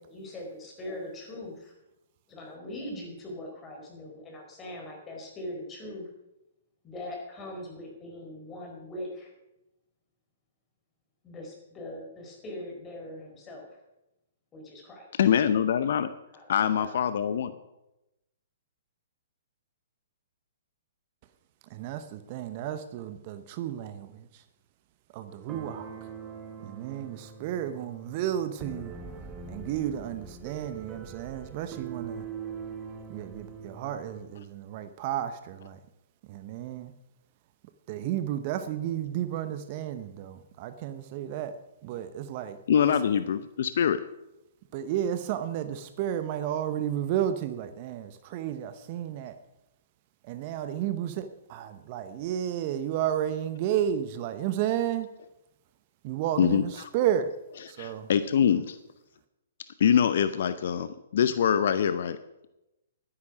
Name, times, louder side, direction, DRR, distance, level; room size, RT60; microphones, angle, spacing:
voice 1, 0.0-1.7 2.3-6.1 6.8-9.3 11.2-13.8 14.5-15.2 16.3-17.0, left 1 dB, 20° left, 4.5 m, -41 dB
voice 2, 15.2-16.1 16.5-17.5 42.7-44.0 56.4-56.9 57.6-58.8 59.8-62.2, left 8 dB, 60° left, 0.7 m, -24 dB
voice 3, 21.7-24.4 25.1-25.9 26.6-29.0 29.5-32.2 33.1-35.8 36.3-36.9 37.9-42.6 44.7-49.3 50.2-55.1 56.0-57.3 57.7-58.1, right 10 dB, 40° right, 0.9 m, -32 dB
sound 1, 25.3-34.2, right 5 dB, 20° right, 1.7 m, -43 dB
12.0 x 9.9 x 6.2 m
figure-of-eight pair, 120°, 0 cm